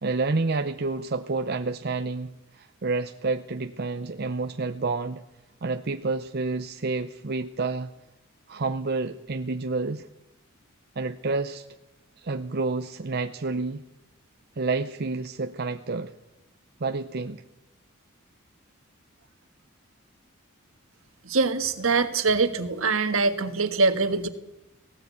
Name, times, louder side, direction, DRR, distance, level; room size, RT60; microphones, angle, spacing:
voice 1, 0.0-5.2 5.6-7.9 8.5-10.1 11.0-11.6 12.2-13.8 14.6-16.1 16.8-17.4, right 3 dB, 50° right, 7 dB, 0.7 m, -29 dB
voice 2, 21.2-24.3, right 4 dB, 75° right, 9 dB, 1.6 m, -23 dB
18.0 x 17.5 x 8.4 m, 0.96 s
head